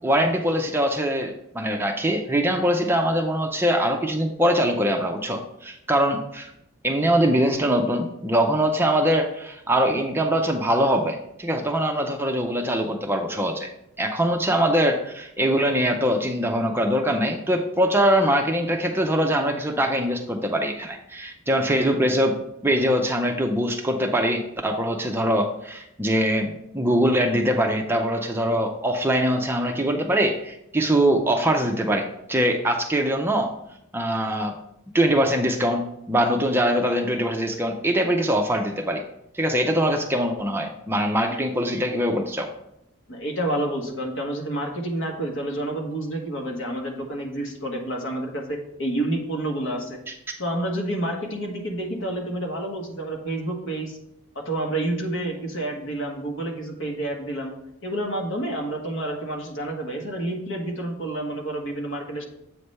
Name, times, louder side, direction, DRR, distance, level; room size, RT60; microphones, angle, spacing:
voice 1, 0.0-6.5 6.8-13.7 14.0-33.5 33.9-34.6 34.9-39.0 39.3-42.5 50.1-50.2, equal, 10° right, 3 dB, 0.5 m, -23 dB
voice 2, 43.1-50.0 50.4-54.0 54.3-57.5 57.8-62.2, right 1 dB, 65° left, 1 dB, 1.3 m, -29 dB
7.8 x 3.3 x 5.4 m, 0.79 s
head